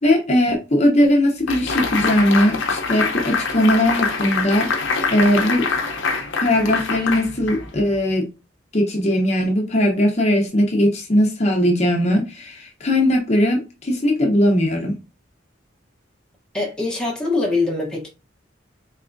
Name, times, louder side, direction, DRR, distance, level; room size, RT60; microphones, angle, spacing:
voice 1, 0.0-4.7 5.1-5.7 6.4-8.3 8.7-14.9, left 1 dB, 35° left, 0.8 m, -19 dB
sound 1, 1.5-7.9, left 4 dB, 90° left, 0.8 m, -24 dB
voice 2, 16.5-18.1, left 3 dB, 5° left, 0.9 m, -23 dB
4.1 x 3.4 x 2.6 m
head